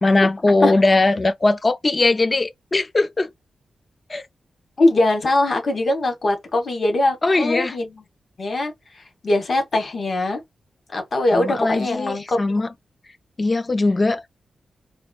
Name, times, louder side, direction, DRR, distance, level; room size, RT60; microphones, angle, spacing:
voice 1, 0.0-3.3 4.1-4.2 7.2-7.8 11.3-12.7 13.4-14.2, left 2 dB, 25° left, 0.4 m, -20 dB
voice 2, 4.8-8.0 8.4-10.4 10.9-12.4, left 2 dB, 45° left, 1.2 m, -21 dB
4.2 x 2.4 x 2.3 m
wide cardioid pair, 160°, 0 cm